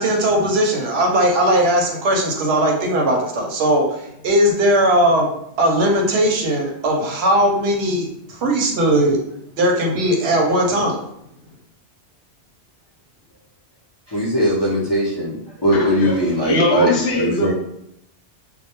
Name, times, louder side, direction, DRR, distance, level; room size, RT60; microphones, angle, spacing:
voice 1, 0.0-5.3 5.6-9.2 9.6-11.0, right 1 dB, 75° right, 1 dB, 0.8 m, -18 dB
voice 2, 14.1-17.5, equal, 30° left, -7 dB, 0.5 m, -20 dB
voice 3, 15.7-17.5, left 2 dB, 70° left, 0 dB, 0.8 m, -22 dB
2.2 x 2.1 x 2.8 m, 0.76 s
omnidirectional pair, 1.1 m